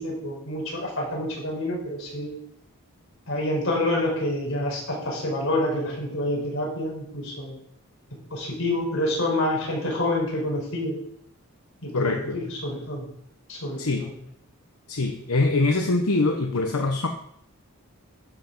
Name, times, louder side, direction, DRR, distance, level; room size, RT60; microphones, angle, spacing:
voice 1, 0.0-2.3 3.3-7.5 8.3-10.9 11.8-13.0 13.5-14.1, left 1 dB, 65° left, -1 dB, 4.7 m, -27 dB
voice 2, 11.9-12.4 13.8-14.0 14.9-17.1, left 3 dB, 90° left, 4 dB, 1.0 m, -23 dB
12.0 x 7.1 x 5.4 m, 0.72 s
head